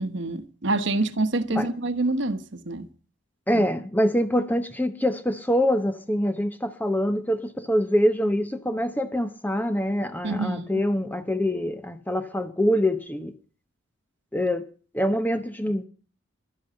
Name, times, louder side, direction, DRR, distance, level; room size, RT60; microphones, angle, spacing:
voice 1, 0.0-2.9 3.5-3.6 10.2-10.8, right 2 dB, 65° right, 1.2 m, -27 dB
voice 2, 3.5-13.3 14.3-14.7 14.9-15.8, equal, 10° left, 0.8 m, -25 dB
12.0 x 10.0 x 7.7 m
head